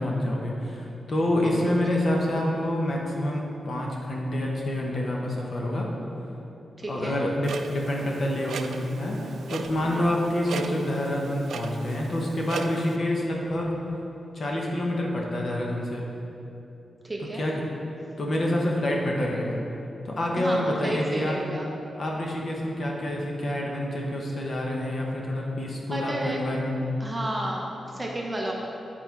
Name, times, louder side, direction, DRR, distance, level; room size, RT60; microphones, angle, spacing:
voice 1, 0.0-5.9 6.9-13.7 14.3-16.0 17.2-17.6 18.2-19.6 20.0-21.4 22.0-26.8, left 1 dB, 45° left, -1 dB, 0.9 m, -27 dB
voice 2, 1.4-1.8 6.8-7.2 9.9-10.2 17.0-17.5 20.4-21.7 25.9-26.4 27.0-28.5, right 1 dB, 15° right, -2 dB, 0.7 m, -32 dB
Clock, 7.4-13.0, right 5 dB, 80° right, 0.3 m, -38 dB
8.1 x 4.3 x 4.5 m, 2.9 s
wide cardioid pair, 165°, 0 cm